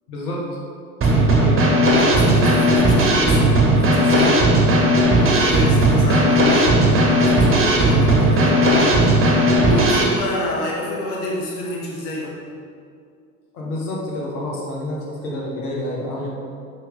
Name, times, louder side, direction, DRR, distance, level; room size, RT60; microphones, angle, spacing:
voice 1, 0.1-0.5 1.2-1.6 13.5-16.3, left 1 dB, 85° left, -4 dB, 1.4 m, -28 dB
Drum kit / Snare drum, 1.0-10.0, right 1 dB, 30° right, 1.6 m, -16 dB
voice 2, 2.0-4.4 4.9-12.4, left 1 dB, 65° left, -2 dB, 1.4 m, -28 dB
5.9 x 5.9 x 3.5 m, 2.3 s
hypercardioid pair, 85°, 43 cm